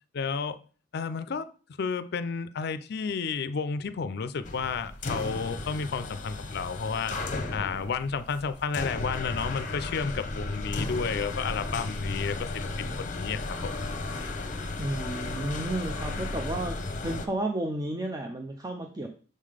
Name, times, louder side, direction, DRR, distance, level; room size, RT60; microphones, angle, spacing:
voice 1, 0.1-0.6 0.9-1.5 1.8-7.1 7.5-13.7, left 5 dB, 60° left, 0.4 m, -32 dB
sound 1, 4.4-17.3, left 2 dB, 45° left, 0.8 m, -34 dB
voice 2, 14.8-16.8 17.0-19.1, right 1 dB, 20° right, 0.5 m, -32 dB
6.6 x 3.8 x 4.9 m
head